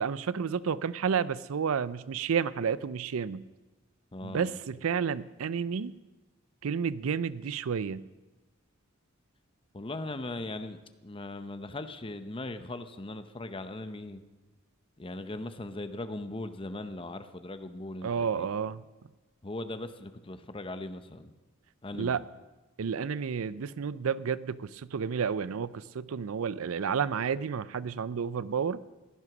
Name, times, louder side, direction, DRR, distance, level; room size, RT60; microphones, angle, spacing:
voice 1, 0.0-3.4 4.2-5.9 6.6-8.1 18.0-18.8 22.0-22.2 22.8-28.8, right 6 dB, 85° right, 18 dB, 0.5 m, -31 dB
voice 2, 4.1-4.6 9.7-14.2 15.0-18.5 19.4-21.3 21.8-22.2, left 2 dB, 25° left, 10 dB, 0.8 m, -39 dB
15.5 x 11.0 x 6.1 m, 1.2 s
head